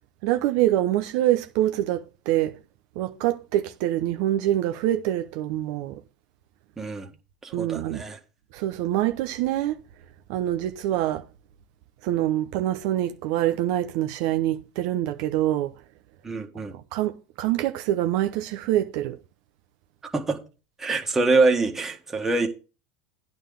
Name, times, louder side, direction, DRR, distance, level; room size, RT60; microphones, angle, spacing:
voice 1, 0.2-2.6 3.0-6.0 7.5-8.0 8.5-9.8 10.3-11.2 12.0-15.7 16.7-19.2, right 13 dB, 60° right, 0.8 m, -25 dB
voice 2, 6.8-7.1 7.4-8.2 16.2-16.7 20.1-20.4 20.8-22.5, right 3 dB, 15° right, 1.7 m, -24 dB
9.4 x 4.0 x 7.0 m
supercardioid pair, 125°, 3 cm